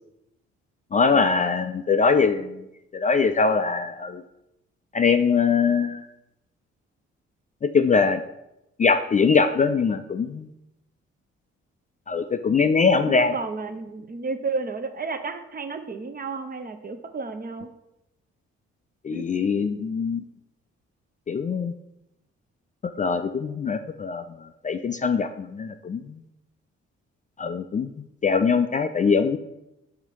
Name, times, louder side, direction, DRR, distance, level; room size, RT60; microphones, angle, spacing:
voice 1, 0.9-2.6 2.9-4.2 4.9-6.0 7.6-8.2 8.8-10.5 12.1-13.3 19.0-20.2 21.3-21.7 23.0-26.2 27.4-27.9 28.2-29.4, left 5 dB, 25° left, 8 dB, 0.4 m, -22 dB
voice 2, 13.0-17.7 19.1-19.2, right 4 dB, 30° right, 8 dB, 0.7 m, -32 dB
5.5 x 4.0 x 4.6 m, 0.88 s
supercardioid pair, 55°, 30 cm